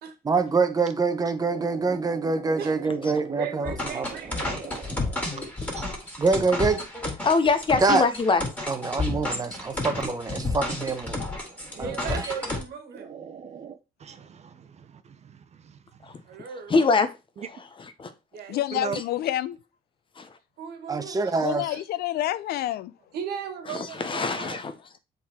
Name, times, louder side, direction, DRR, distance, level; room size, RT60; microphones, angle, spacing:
voice 1, 0.2-4.1 6.2-6.8 7.8-8.0 8.7-11.2 11.8-12.3 20.9-21.7, right 4 dB, 20° right, 1.0 m, -25 dB
voice 2, 1.4-5.3 5.7-5.8 10.4-10.6 11.4-12.2 12.9-16.1 17.4-17.5 18.7-19.0, right 7 dB, 40° right, 0.7 m, -41 dB
voice 3, 3.3-4.7 11.7-13.1 16.3-16.7 18.3-18.7 20.6-21.3 21.7-21.8 23.1-24.6, right 7 dB, 70° right, 1.7 m, -37 dB
sound 1, 3.6-12.6, left 2 dB, 10° left, 2.7 m, -31 dB
voice 4, 7.2-8.4 16.1-16.2 16.7-17.1 18.0-18.1 18.9-19.0 20.2-20.3 23.7-24.7, left 4 dB, 30° left, 0.9 m, -23 dB
voice 5, 18.5-19.6 21.4-22.9, left 14 dB, 65° left, 0.5 m, -28 dB
7.2 x 4.0 x 4.3 m
cardioid pair, 110°, 17 cm